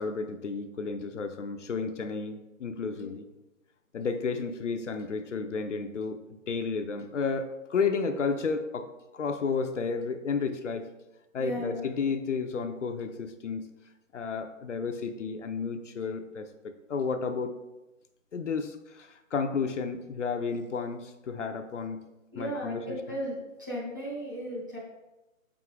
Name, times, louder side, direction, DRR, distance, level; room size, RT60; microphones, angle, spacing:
voice 1, 0.0-3.3 3.9-6.2 6.5-10.9 11.3-13.7 14.1-17.6 18.3-22.0 22.4-23.2, left 5 dB, 60° left, 7 dB, 0.6 m, -32 dB
voice 2, 11.4-11.9 22.3-24.8, equal, 15° right, -7 dB, 0.6 m, -35 dB
5.3 x 4.8 x 3.6 m, 1.0 s
hypercardioid pair, 160°, 42 cm